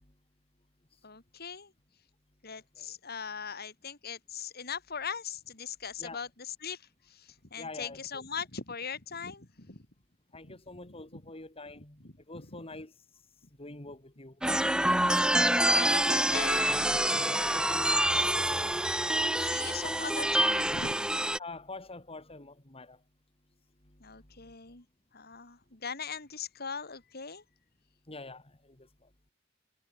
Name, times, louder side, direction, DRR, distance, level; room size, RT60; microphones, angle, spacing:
voice 1, 1.0-1.7 2.4-6.8 7.1-9.8 10.4-10.6 11.1-11.2 12.3-12.6 14.8-17.2 19.4-21.0 24.0-24.8 25.1-27.4, left 6 dB, 55° left, 3.6 m, -40 dB
voice 2, 7.6-8.2 10.3-12.9 13.6-14.4 17.3-18.9 21.4-23.0 28.1-29.1, left 2 dB, 30° left, 3.2 m, -45 dB
sound 1, 14.4-21.4, right 1 dB, 5° right, 1.4 m, -27 dB
head